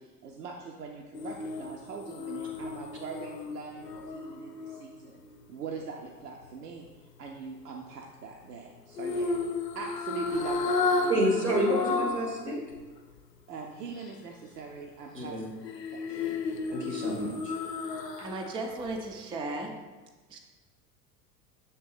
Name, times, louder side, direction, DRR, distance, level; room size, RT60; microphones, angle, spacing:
voice 1, 0.0-5.2 5.5-6.8 7.2-9.4 9.7-11.2 13.5-15.3 15.9-16.4, right 5 dB, 75° right, 0 dB, 0.7 m, -41 dB
sound 1, 1.1-5.4 9.0-12.3 12.7-12.8 15.6-18.5 18.9-19.0, left 3 dB, 85° left, 0.7 m, -32 dB
voice 2, 11.1-12.6 15.1-15.5 16.7-17.5, equal, 90° right, 0 dB, 1.6 m, -29 dB
voice 3, 18.2-19.7 20.3-20.4, right 2 dB, 10° right, 3 dB, 0.3 m, -35 dB
6.6 x 3.8 x 4.2 m, 1.2 s
figure-of-eight pair, 75°, 47 cm